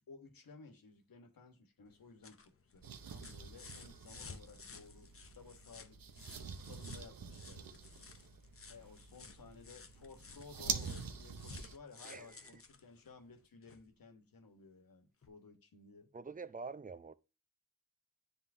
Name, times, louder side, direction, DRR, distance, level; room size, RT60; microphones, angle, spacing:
voice 1, 0.0-8.3 8.7-16.1, left 4 dB, 80° left, 1.4 m, -57 dB
sound 1, 1.9-13.9 15.2-15.3, left 4 dB, 40° left, 0.8 m, -56 dB
sound 2, 2.8-11.8, right 6 dB, 80° right, 0.8 m, -46 dB
voice 2, 12.0-12.5 16.1-17.1, right 4 dB, 25° right, 0.5 m, -46 dB
9.6 x 3.7 x 2.6 m
cardioid pair, 55°, 34 cm